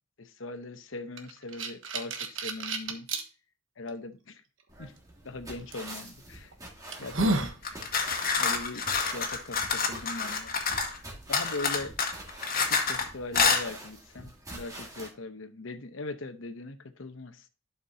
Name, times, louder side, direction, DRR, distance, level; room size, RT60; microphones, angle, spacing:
voice 1, 0.2-3.1 3.8-4.4 4.8-4.9 5.2-6.5 7.0-7.8 8.3-10.5 11.3-11.9 12.5-17.5, left 2 dB, 75° left, 9 dB, 0.9 m, -40 dB
sound 1, 1.2-3.2 3.9-4.0 5.7-5.9 6.5-6.6 6.9-7.6, right 2 dB, 75° right, 1.2 m, -30 dB
sound 2, 4.7-15.1, right 1 dB, 20° right, 2.0 m, -46 dB
sound 3, 7.6-11.0 11.3-13.0 13.3-13.6, left 5 dB, 50° left, 1.7 m, -27 dB
11.5 x 5.9 x 2.8 m, 0.35 s
head